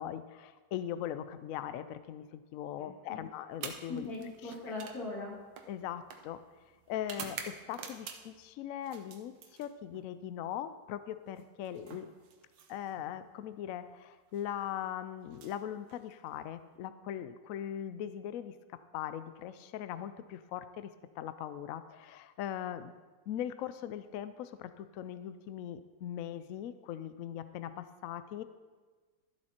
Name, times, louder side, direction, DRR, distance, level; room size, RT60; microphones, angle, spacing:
voice 1, 0.0-4.1 4.4-4.5 5.7-9.3 9.6-12.1 12.7-18.5 18.9-22.9 23.3-28.4, left 10 dB, 85° left, 12 dB, 0.7 m, -40 dB
voice 2, 2.8-3.2 3.9-5.3, left 2 dB, 55° left, -3 dB, 3.0 m, -40 dB
sound 1, 3.5-8.5 8.8-10.1 11.3-13.1 14.2-14.4 15.2-16.4, right 6 dB, 90° right, 1.7 m, -48 dB
13.0 x 7.9 x 4.3 m, 1.4 s
omnidirectional pair, 2.0 m